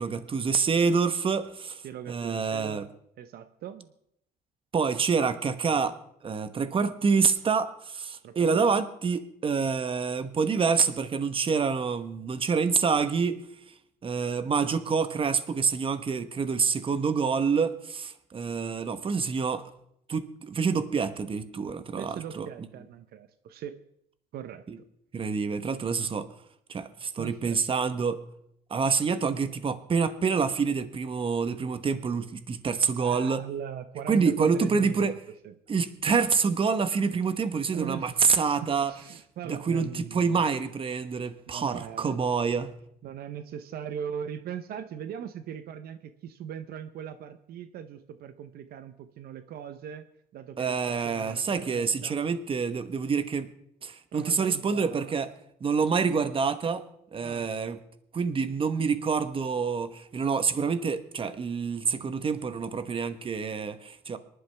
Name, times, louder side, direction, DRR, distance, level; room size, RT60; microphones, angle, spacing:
voice 1, 0.0-1.8 2.1-2.9 4.7-6.0 6.2-13.4 14.0-19.6 20.1-22.5 24.7-24.8 25.1-26.3 26.7-28.2 28.7-33.4 34.1-35.1 35.7-38.9 39.5-42.7 50.6-53.5 53.8-55.3 55.6-56.8 57.1-57.8 58.1-64.2, right 5 dB, 30° right, 11 dB, 1.1 m, -27 dB
voice 2, 1.8-2.8 3.2-3.9 8.2-8.7 22.0-23.8 24.3-24.8 27.2-27.6 33.0-35.2 35.4-35.5 37.7-38.2 38.9-40.4 41.5-42.1 43.0-50.1 50.3-52.2 54.1-55.2 57.2-57.5, right 8 dB, 65° right, 11 dB, 0.8 m, -40 dB
25.0 x 11.5 x 3.4 m, 0.74 s
cardioid pair, 110°, 17 cm